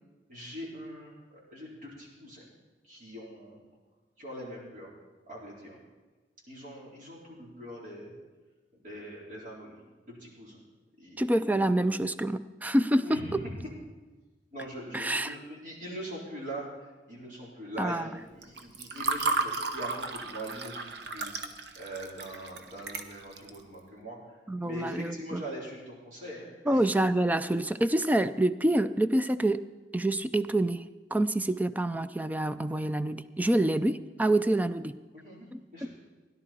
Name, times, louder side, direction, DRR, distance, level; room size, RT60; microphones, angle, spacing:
voice 1, 0.3-2.4 2.8-3.6 4.2-4.9 5.3-5.8 6.5-8.2 8.7-10.6 11.0-11.5 13.0-13.5 14.5-21.4 21.8-26.9 33.6-33.8 34.3-34.6 35.1-35.9, equal, 45° right, -4 dB, 4.1 m, -42 dB
voice 2, 11.2-13.2 14.9-15.3 17.8-18.1 24.5-25.4 26.7-29.6 29.9-30.8 31.1-35.0 35.5-35.9, right 1 dB, 10° right, 12 dB, 0.4 m, -27 dB
Water / Fill (with liquid), 18.4-23.5, right 3 dB, 70° right, 1.0 m, -33 dB
17.0 x 11.0 x 4.4 m, 1.3 s
head